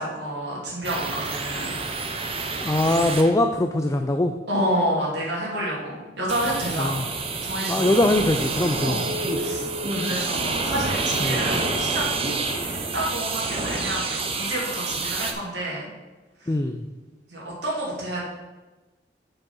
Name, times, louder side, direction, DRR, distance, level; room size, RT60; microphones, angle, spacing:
voice 1, 0.0-1.8 4.5-7.0 7.4-7.9 8.7-9.1 9.4-12.1 12.7-15.9 16.4-16.5 17.3-18.2, right 1 dB, 80° right, -5 dB, 2.6 m, -29 dB
sound 1, 0.8-3.3 6.3-15.3, right 3 dB, 35° right, 0.8 m, -28 dB
voice 2, 2.6-4.3 6.8-7.0 7.7-9.0 11.2-11.4 16.5-16.8, left 1 dB, 20° left, 6 dB, 0.4 m, -22 dB
6.9 x 5.4 x 5.5 m, 1.2 s
head